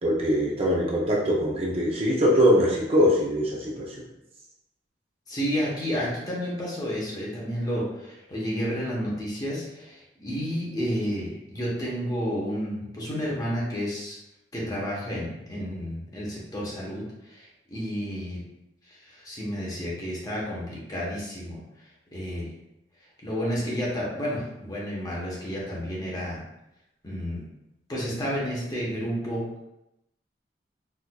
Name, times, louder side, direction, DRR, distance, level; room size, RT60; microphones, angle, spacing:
voice 1, 0.0-4.0, equal, 35° right, -3 dB, 0.5 m, -22 dB
voice 2, 5.3-14.2 14.5-18.4 18.9-21.6 22.1-22.5 23.2-26.4 27.0-27.4 27.9-29.4, equal, 20° left, -5 dB, 0.9 m, -31 dB
4.3 x 2.5 x 2.2 m, 0.90 s
head